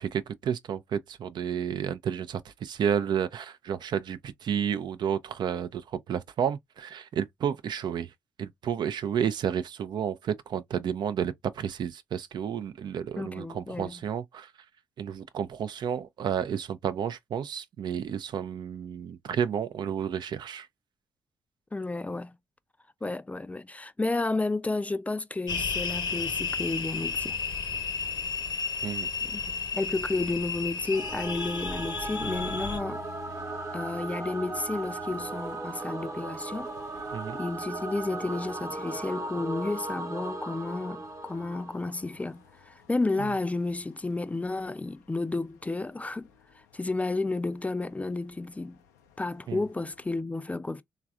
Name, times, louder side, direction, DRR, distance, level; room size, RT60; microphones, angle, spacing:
voice 1, 0.0-8.1 8.4-14.5 15.0-20.7 28.8-29.1 37.1-37.4 49.5-49.6, right 8 dB, 55° right, 0.4 m, -31 dB
voice 2, 13.2-14.0 21.7-22.3 23.0-27.4 29.2-33.0 33.7-36.7 37.3-46.3 46.7-48.8 49.2-50.8, left 3 dB, 15° left, 0.3 m, -32 dB
sound 1, 25.5-32.8, left 5 dB, 55° left, 0.8 m, -33 dB
Singing / Musical instrument, 30.9-42.2, right 2 dB, 35° right, 0.9 m, -37 dB
sound 2, 32.2-50.2, left 9 dB, 90° left, 0.4 m, -53 dB
3.2 x 2.4 x 2.3 m
hypercardioid pair, 45°, 9 cm